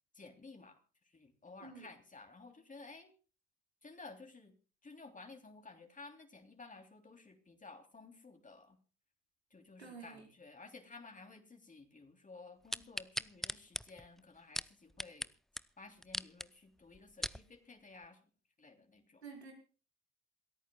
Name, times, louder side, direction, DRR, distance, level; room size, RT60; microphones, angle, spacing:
voice 1, 0.1-0.8 1.0-3.1 3.8-4.5 4.8-8.8 9.5-15.3 15.8-18.2 18.6-19.2, left 3 dB, 25° left, 4 dB, 3.4 m, -54 dB
voice 2, 9.8-10.2 19.2-19.5, right 5 dB, 90° right, 2 dB, 4.5 m, -50 dB
sound 1, 12.7-15.3 15.6-15.7 16.0-16.5 16.9-17.4 18.0-18.1, equal, ahead, 0.6 m, -40 dB
27.5 x 14.0 x 2.4 m, 0.36 s
figure-of-eight pair, 55°, 31 cm